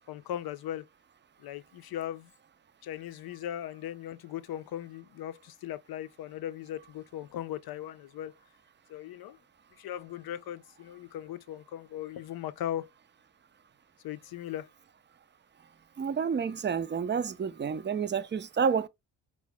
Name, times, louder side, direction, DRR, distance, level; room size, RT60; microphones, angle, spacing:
voice 1, 0.1-0.9 1.4-2.3 2.8-8.4 8.9-9.4 9.8-12.9 14.0-14.7, left 11 dB, 55° left, 0.6 m, -38 dB
voice 2, 16.0-18.9, right 6 dB, 25° right, 0.5 m, -29 dB
4.8 x 2.2 x 3.4 m
hypercardioid pair, 45°, 43 cm